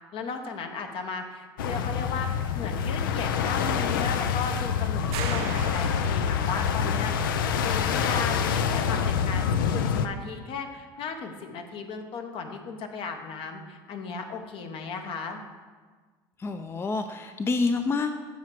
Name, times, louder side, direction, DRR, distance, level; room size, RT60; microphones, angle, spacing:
voice 1, 0.1-9.5 9.7-15.4, left 5 dB, 55° left, 5 dB, 0.9 m, -36 dB
sound 1, 1.6-10.1, left 7 dB, 90° left, 0.4 m, -26 dB
sound 2, 5.1-6.6, right 8 dB, 65° right, 0.7 m, -37 dB
voice 2, 16.4-18.1, left 3 dB, 20° left, 7 dB, 0.4 m, -27 dB
7.2 x 4.8 x 4.5 m, 1.5 s
hypercardioid pair, 80°, 11 cm